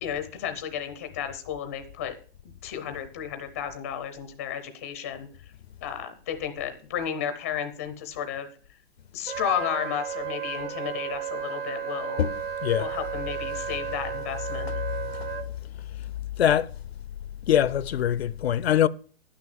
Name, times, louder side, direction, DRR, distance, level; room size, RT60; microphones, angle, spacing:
voice 1, 0.0-2.1 2.6-5.5 5.8-8.5 9.1-12.2 12.8-14.7, left 9 dB, 15° left, 0.6 m, -33 dB
Wind instrument woodwind instrument, 9.3-15.4, right 8 dB, 65° right, 1.9 m, -33 dB
voice 2, 17.5-18.9, left 10 dB, 75° left, 0.6 m, -23 dB
11.0 x 6.3 x 7.5 m
hypercardioid pair, 180°, 31 cm